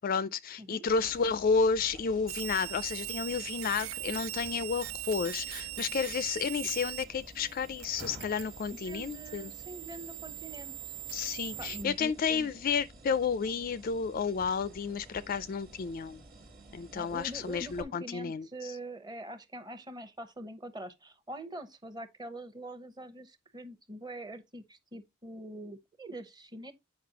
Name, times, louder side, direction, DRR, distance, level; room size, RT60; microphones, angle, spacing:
voice 1, 0.0-9.5 11.1-16.2 16.7-18.7, left 5 dB, 40° left, 0.3 m, -31 dB
Fridge Compactor, 0.9-17.8, right 1 dB, 45° right, 1.4 m, -52 dB
sound 1, 2.3-7.0 7.3-11.8, right 16 dB, 70° right, 0.4 m, -41 dB
voice 2, 8.8-10.9 11.6-12.5 16.9-26.7, right 1 dB, 20° right, 0.9 m, -44 dB
8.5 x 5.3 x 2.8 m
head